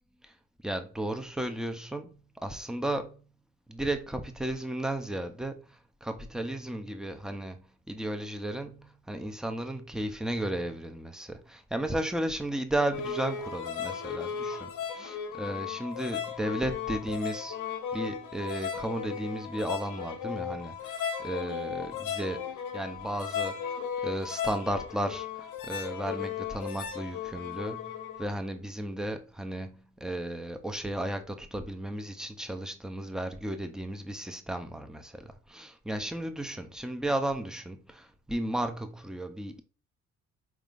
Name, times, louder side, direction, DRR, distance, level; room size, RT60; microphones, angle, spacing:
voice 1, 0.6-2.1 2.4-3.2 3.7-5.6 6.0-17.6 17.9-22.5 22.7-27.9 28.2-39.6, right 1 dB, ahead, 0.5 m, -34 dB
sound 1, 12.9-28.3, left 7 dB, 85° left, 0.8 m, -36 dB
4.2 x 3.6 x 2.4 m
cardioid pair, 90°, 30 cm